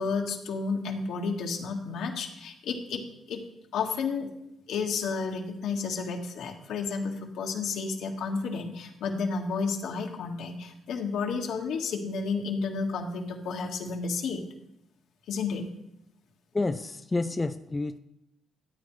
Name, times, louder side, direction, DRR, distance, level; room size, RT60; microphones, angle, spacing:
voice 1, 0.0-3.4 3.7-4.3 4.7-14.4 15.3-15.6, left 4 dB, 80° left, 2 dB, 1.5 m, -31 dB
voice 2, 16.5-18.0, left 2 dB, 20° left, 8 dB, 0.4 m, -29 dB
13.5 x 8.6 x 3.2 m, 0.82 s
cardioid pair, 90°, 0 cm